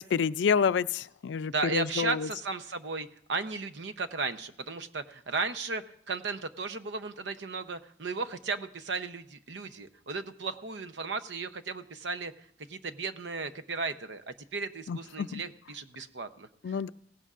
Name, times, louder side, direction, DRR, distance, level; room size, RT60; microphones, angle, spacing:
voice 1, 0.0-2.3 14.9-15.4 16.6-16.9, left 6 dB, 80° left, 16 dB, 0.4 m, -28 dB
voice 2, 1.5-12.3 12.7-14.2 14.5-16.7, right 4 dB, 80° right, 10 dB, 0.7 m, -35 dB
17.0 x 16.5 x 2.5 m, 0.73 s
head